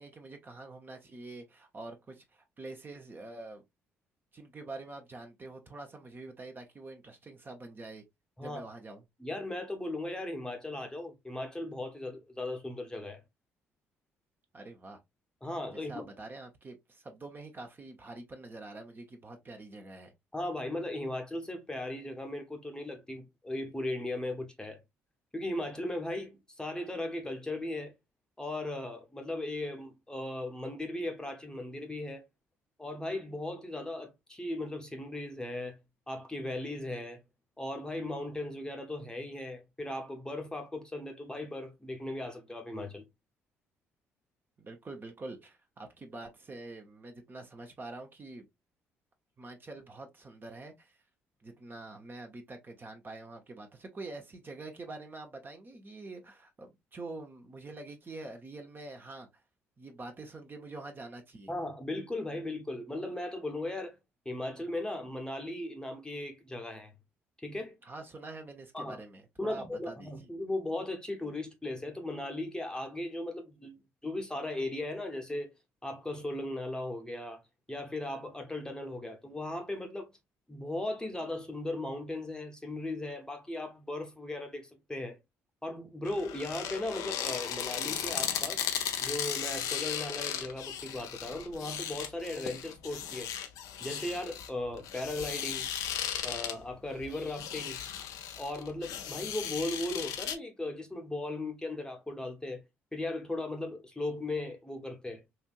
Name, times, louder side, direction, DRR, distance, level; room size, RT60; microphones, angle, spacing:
voice 1, 0.0-3.6 4.3-8.0 8.4-9.0 14.5-15.0 15.7-20.1 44.6-48.5 49.4-51.0 51.4-59.4 59.8-61.5 67.8-70.3, right 2 dB, 30° right, 0.9 m, -46 dB
voice 2, 9.2-13.2 15.4-16.1 20.3-24.8 25.3-27.9 28.4-32.2 32.8-35.8 36.1-37.2 37.6-43.1 61.5-64.0 64.2-66.9 67.4-67.8 68.7-69.0 69.4-73.8 74.0-75.5 75.8-77.4 77.7-80.1 80.5-85.2 85.6-88.6 89.0-93.3 93.8-95.7 96.2-97.8 98.4-102.6 102.9-105.2, left 1 dB, 10° left, 1.0 m, -37 dB
sound 1, 86.0-100.3, left 9 dB, 60° left, 0.6 m, -36 dB
4.3 x 2.7 x 2.5 m
figure-of-eight pair, 45°, 7 cm